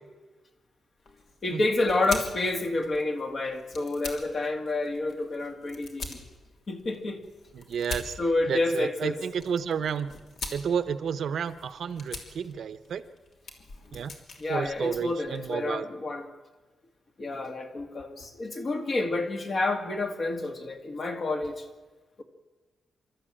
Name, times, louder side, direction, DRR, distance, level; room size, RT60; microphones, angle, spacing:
sound 1, 1.0-15.5, left 3 dB, 60° left, 3.0 m, -44 dB
voice 1, 1.4-6.2 6.7-7.2 8.2-9.2 14.4-16.3 17.2-21.6, left 2 dB, 40° left, 5 dB, 2.2 m, -29 dB
voice 2, 7.5-8.1 8.5-10.1 10.5-13.0 13.9-14.1 14.5-15.9, right 7 dB, 65° right, 13 dB, 0.9 m, -31 dB
26.5 x 13.0 x 8.9 m, 1.3 s
wide cardioid pair, 160°, 0 cm